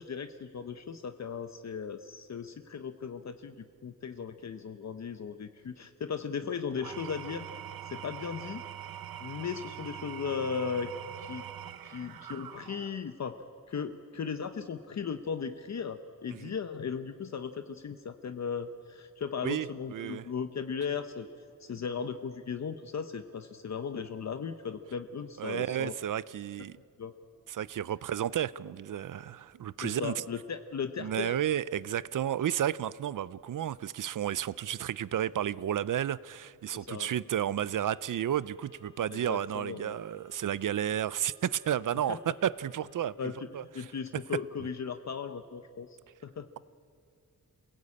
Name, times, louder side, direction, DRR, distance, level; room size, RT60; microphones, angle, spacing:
voice 1, 0.0-7.5 7.8-8.6 9.2-10.9 11.2-11.4 11.8-21.3 21.6-25.9 27.0-27.1 29.8-31.4 36.7-37.1 39.1-40.0 42.1-42.3 43.2-46.0 46.2-46.5, left 6 dB, 50° left, 0.8 m, -37 dB
Engine / Tools, 6.7-13.1, right 10 dB, 80° right, 0.9 m, -43 dB
voice 2, 19.4-20.3 25.4-26.8 27.5-30.1 31.0-43.1 43.5-43.9 44.1-44.2, right 10 dB, 65° right, 0.5 m, -32 dB
sound 1, 37.9-43.0, left 3 dB, 75° left, 3.1 m, -59 dB
27.5 x 17.5 x 8.6 m
wide cardioid pair, 155°, 35 cm